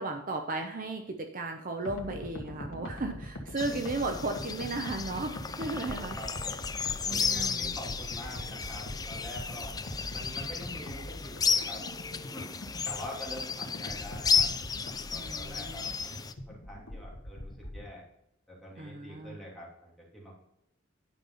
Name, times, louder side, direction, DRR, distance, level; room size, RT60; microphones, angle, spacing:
voice 1, 0.0-6.2 7.1-7.7 15.1-15.9 18.8-19.4, right 2 dB, 45° right, 4 dB, 0.8 m, -35 dB
sound 1, 1.8-17.9, left 1 dB, 70° left, 1.5 m, -42 dB
sound 2, 3.6-16.3, left 6 dB, 20° left, 0.5 m, -33 dB
voice 2, 6.1-6.7 7.0-9.7 10.1-11.8 12.1-12.5 12.8-14.5 14.8-18.0 18.5-20.5, equal, ahead, -5 dB, 2.9 m, -45 dB
10.5 x 5.4 x 5.6 m, 0.80 s
head